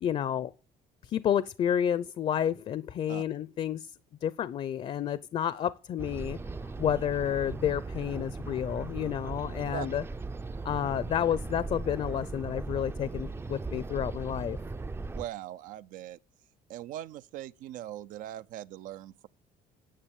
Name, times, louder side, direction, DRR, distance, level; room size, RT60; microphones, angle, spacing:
voice 1, 0.0-0.5 1.0-3.9 4.2-6.4 6.8-10.0 10.6-14.6, left 9 dB, 45° left, 0.6 m, -30 dB
sound 1, 6.0-15.3, right 3 dB, 15° right, 0.5 m, -38 dB
voice 2, 15.2-16.2 16.7-19.3, right 13 dB, 70° right, 0.6 m, -40 dB
10.0 x 7.1 x 7.2 m
cardioid pair, 105°, 14 cm